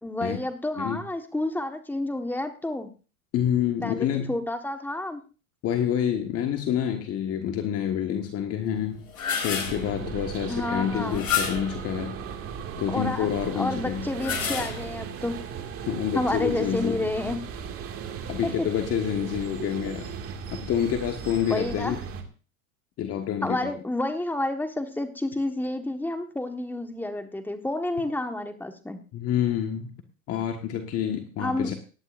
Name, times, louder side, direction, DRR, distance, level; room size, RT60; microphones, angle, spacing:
voice 1, 0.0-2.9 3.8-5.2 10.5-11.2 12.9-13.3 13.5-15.4 16.1-17.4 18.4-18.7 21.5-22.0 23.4-29.0 31.4-31.7, left 1 dB, 5° left, 7 dB, 1.3 m, -30 dB
voice 2, 3.3-4.3 5.6-9.0 9.4-12.2 12.8-14.1 15.9-17.0 18.3-20.1 20.6-22.0 23.0-23.7 29.1-29.9 30.3-31.7, left 9 dB, 35° left, 5 dB, 1.5 m, -27 dB
sound 1, 8.9-9.9 11.1-11.8 14.0-15.1, left 7 dB, 85° left, 4.2 m, -29 dB
sound 2, 9.6-22.2, right 7 dB, 30° right, 2.1 m, -37 dB
18.0 x 11.5 x 2.5 m, 0.35 s
hypercardioid pair, 115°, 42 cm